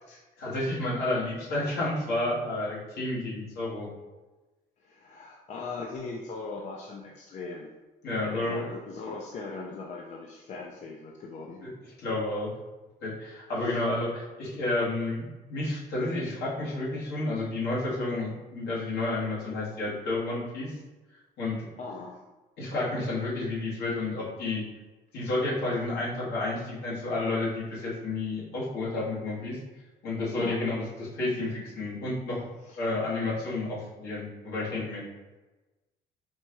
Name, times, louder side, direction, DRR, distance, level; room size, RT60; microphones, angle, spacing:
voice 1, 0.4-3.9 8.0-8.6 11.6-11.7 12.0-12.5 13.0-20.7 21.4-21.6 22.6-24.6 25.1-29.6 30.0-32.5 32.8-35.0, left 2 dB, 75° left, -6 dB, 1.5 m, -31 dB
voice 2, 4.8-7.7 8.2-11.6 13.6-13.8 21.8-22.2 30.4-30.6 32.6-32.8, left 3 dB, 45° left, 0 dB, 0.4 m, -40 dB
4.3 x 2.3 x 2.9 m, 1.1 s
cardioid pair, 110°, 17 cm